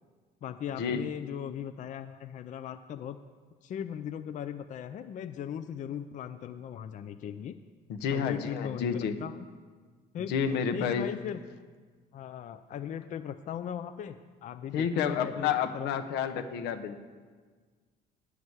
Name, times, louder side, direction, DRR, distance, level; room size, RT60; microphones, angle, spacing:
voice 1, 0.4-3.2 3.6-7.5 8.1-9.4 10.1-10.3 10.7-11.4 12.1-15.9, left 9 dB, 50° left, 10 dB, 0.5 m, -38 dB
voice 2, 7.9-9.1 10.3-11.1 14.7-17.0, left 7 dB, 85° left, 7 dB, 0.9 m, -30 dB
9.7 x 5.9 x 8.0 m, 1.5 s
cardioid pair, 110°, 17 cm